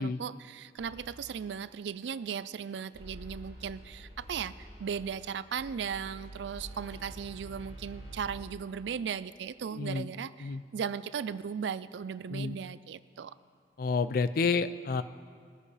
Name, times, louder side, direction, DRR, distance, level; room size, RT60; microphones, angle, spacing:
voice 1, 0.0-13.3, right 7 dB, 75° right, 16 dB, 0.3 m, -37 dB
sound 1, 0.8-1.5 2.9-8.4, right 1 dB, 80° left, 2.3 m, -47 dB
voice 2, 9.7-10.1 10.4-10.6 12.3-12.6 13.8-15.0, left 4 dB, 50° left, 13 dB, 0.4 m, -29 dB
21.0 x 9.8 x 3.3 m, 2.1 s
head